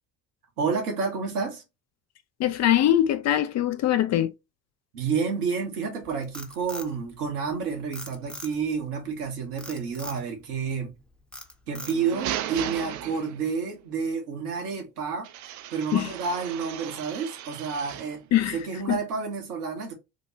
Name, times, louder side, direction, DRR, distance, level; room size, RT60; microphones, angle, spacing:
voice 1, 0.6-1.6 4.9-10.9 11.7-15.3 15.7-18.2 18.5-19.9, right 5 dB, 85° right, 1.0 m, -30 dB
voice 2, 2.4-4.3 15.9-16.1 18.3-18.6 18.9-19.0, left 12 dB, 40° left, 0.4 m, -22 dB
Frog, 6.0-7.6 7.9-8.8 9.6-10.2 10.7-11.0 11.3-12.2, left 1 dB, ahead, 0.7 m, -41 dB
sound 1, 11.8-13.7 15.2-18.2, right 12 dB, 45° right, 0.4 m, -36 dB
2.9 x 2.1 x 4.1 m
hypercardioid pair, 60°, 45 cm